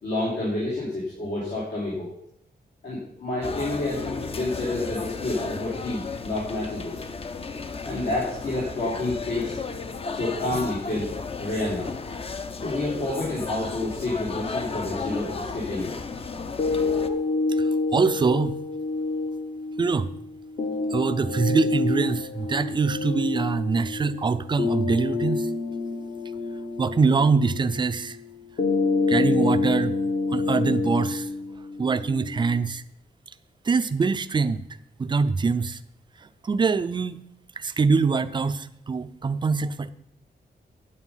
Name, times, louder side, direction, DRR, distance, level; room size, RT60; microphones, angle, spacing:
voice 1, 0.0-2.1 2.8-7.0 7.8-9.6 10.1-11.1 11.4-11.9 12.6-15.9, left 2 dB, 80° left, -7 dB, 3.4 m, -29 dB
sound 1, 3.4-17.1, left 4 dB, 35° left, 0.6 m, -34 dB
sound 2, 16.6-32.6, left 3 dB, 50° left, 1.2 m, -27 dB
voice 2, 16.8-17.2 17.6-18.6 19.8-20.1 20.9-25.5 26.8-28.2 29.1-29.9 30.3-31.3 31.8-32.8 33.7-34.6 35.0-35.8 36.4-37.2 37.6-39.9, right 4 dB, 25° right, 13 dB, 0.5 m, -24 dB
9.7 x 8.5 x 5.6 m, 0.73 s
wide cardioid pair, 165°, 18 cm